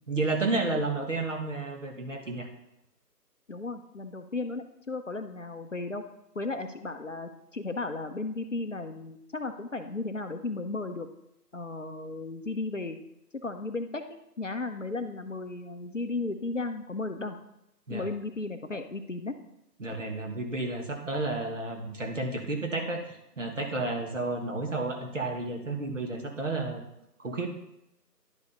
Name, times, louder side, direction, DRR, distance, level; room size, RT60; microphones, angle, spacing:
voice 1, 0.1-2.5 17.9-18.1 19.8-26.9 27.2-27.5, right 2 dB, 50° right, 3 dB, 1.7 m, -31 dB
voice 2, 3.5-6.0 6.3-11.1 11.5-13.0 13.4-14.0 14.4-17.4 17.9-19.3, left 3 dB, 50° left, 7 dB, 0.7 m, -35 dB
10.5 x 5.2 x 5.3 m, 0.82 s
figure-of-eight pair, 160°, 50 cm